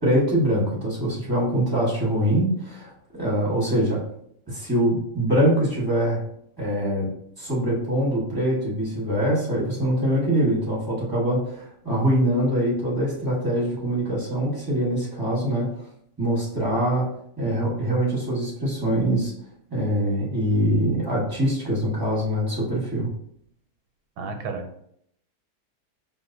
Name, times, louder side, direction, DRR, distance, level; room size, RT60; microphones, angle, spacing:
voice 1, 0.0-4.0 4.5-6.2 6.6-7.1 7.4-15.7 16.2-17.1 17.4-19.3 19.7-23.1, right 1 dB, 15° right, -6 dB, 1.0 m, -23 dB
voice 2, 24.2-24.9, right 4 dB, 85° right, 5 dB, 1.2 m, -33 dB
5.7 x 2.5 x 2.6 m, 0.71 s
omnidirectional pair, 1.7 m